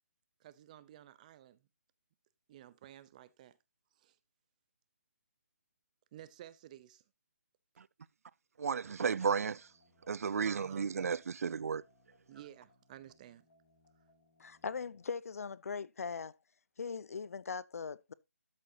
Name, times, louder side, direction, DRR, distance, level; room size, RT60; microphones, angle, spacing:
voice 1, 0.4-1.6 2.5-3.6 4.0-4.2 6.1-7.0 10.4-10.9 12.3-13.4, right 12 dB, 30° right, 0.7 m, -53 dB
voice 2, 8.6-9.7 10.1-11.8, right 6 dB, 70° right, 0.4 m, -33 dB
sound 1, 9.4-15.1, left 1 dB, 35° left, 6.6 m, -70 dB
voice 3, 14.4-16.4 16.8-18.1, left 5 dB, 70° left, 0.6 m, -40 dB
13.0 x 6.3 x 2.8 m
hypercardioid pair, 155°, 8 cm